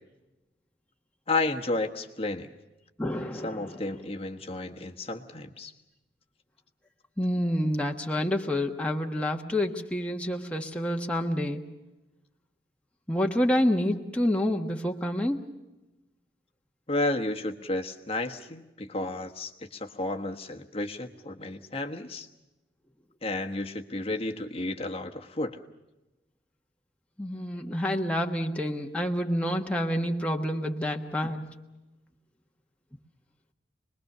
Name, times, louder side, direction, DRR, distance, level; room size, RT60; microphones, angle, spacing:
voice 1, 1.3-2.5 3.4-5.7 16.9-22.3 23.2-25.6, left 2 dB, 35° left, 4 dB, 1.3 m, -32 dB
voice 2, 3.0-3.8 7.2-11.6 13.1-15.4 27.2-31.5, left 1 dB, 5° left, 2 dB, 1.3 m, -28 dB
26.5 x 21.0 x 6.8 m, 1.0 s
head